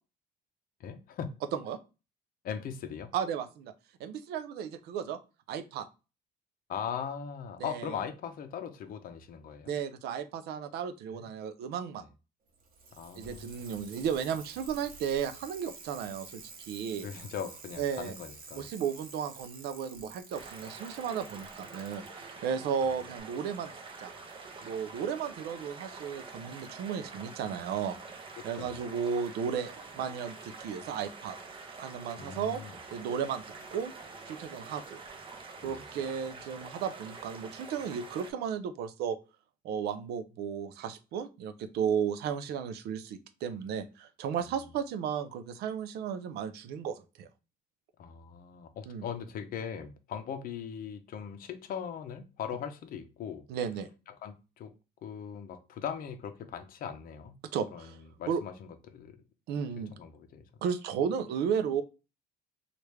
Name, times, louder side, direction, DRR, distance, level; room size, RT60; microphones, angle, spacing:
voice 1, 0.8-1.3 2.4-3.1 6.7-9.7 11.1-11.3 13.0-13.6 17.0-18.7 28.4-28.8 32.2-32.7 35.6-35.8 48.0-53.4 54.1-54.7 55.0-57.4 57.7-57.9 58.2-59.2 59.9-60.6, left 8 dB, 60° left, 0.6 m, -40 dB
voice 2, 3.1-3.7 4.0-5.2 5.5-5.9 7.6-7.9 9.7-12.0 13.2-17.1 17.8-18.1 18.5-23.7 24.0-24.1 24.6-28.0 28.4-31.4 31.8-32.6 32.9-33.4 33.7-33.9 34.3-35.0 35.6-39.2 39.6-47.3 48.9-49.0 53.5-53.9 57.5-58.0 58.3-58.4 59.5-59.9 60.6-61.8, right 7 dB, 75° right, 0.4 m, -34 dB
Bicycle, 12.5-22.1 23.2-23.3, right 4 dB, 60° right, 0.9 m, -50 dB
sound 1, 20.3-38.3, right 4 dB, 30° right, 0.6 m, -46 dB
3.1 x 2.4 x 3.1 m
cardioid pair, 110°, 17 cm